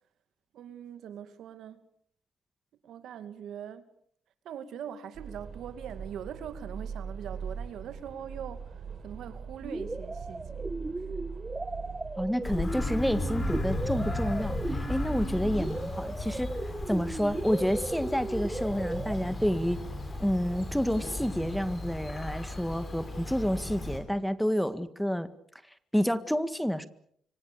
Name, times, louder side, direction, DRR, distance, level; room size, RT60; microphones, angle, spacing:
voice 1, 0.5-1.8 2.8-3.9 4.4-11.3, right 9 dB, 75° right, 2.4 m, -42 dB
sound 1, 5.1-15.7, right 6 dB, 50° right, 4.1 m, -41 dB
sound 2, 9.6-19.2, right 2 dB, 15° right, 1.7 m, -37 dB
voice 2, 12.2-16.5 16.9-19.8 20.2-25.3 25.9-26.9, equal, ahead, 1.8 m, -29 dB
Bird vocalization bird call bird song, 12.4-24.0, left 2 dB, 35° left, 7.8 m, -36 dB
26.5 x 25.0 x 7.0 m
cardioid pair, 90°, 0 cm